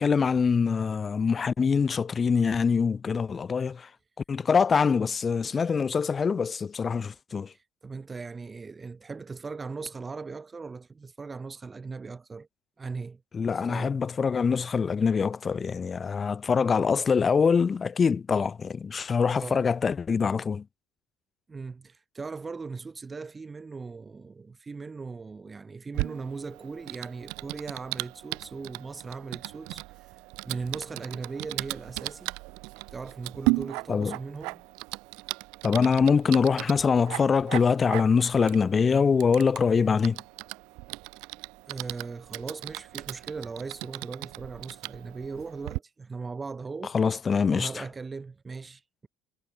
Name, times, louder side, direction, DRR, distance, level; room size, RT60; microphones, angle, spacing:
voice 1, 0.0-3.9 4.3-7.5 13.3-20.6 33.9-34.2 35.6-40.2 46.9-47.8, left 5 dB, 30° left, 0.4 m, -24 dB
voice 2, 7.5-12.5 12.8-13.2 13.5-14.0 19.2-19.7 21.5-32.4 32.9-34.6 41.7-47.0 47.4-49.1, right 4 dB, 25° right, 3.0 m, -39 dB
Typing, 25.9-45.8, right 26 dB, 75° right, 0.9 m, -37 dB
supercardioid pair, 90°, 0 cm